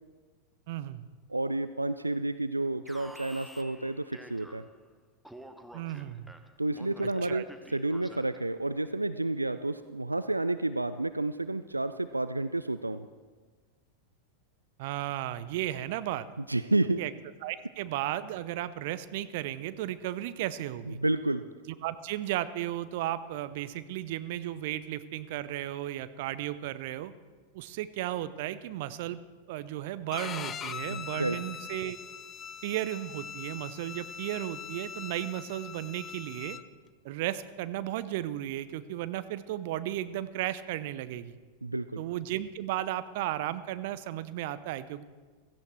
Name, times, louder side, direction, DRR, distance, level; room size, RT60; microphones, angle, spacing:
voice 1, 0.7-1.1 5.7-6.3 7.0-7.4 14.8-16.3 17.0-17.1 17.4-21.0 21.7-27.1 27.5-29.2 29.5-32.0 32.6-36.6 37.0-41.3 42.0-45.0, right 13 dB, 50° right, 14 dB, 0.7 m, -34 dB
voice 2, 1.3-4.6 6.6-13.1 16.4-17.0 20.9-21.4 30.9-31.4 41.6-42.0, right 2 dB, 85° right, 13 dB, 0.4 m, -30 dB
Alarm, 2.9-4.9 5.2-8.5, right 1 dB, ahead, 0.9 m, -50 dB
Bowed string instrument, 30.1-36.6, left 8 dB, 25° left, 0.6 m, -41 dB
16.5 x 14.5 x 4.5 m, 1.4 s
figure-of-eight pair, 90°, 0 cm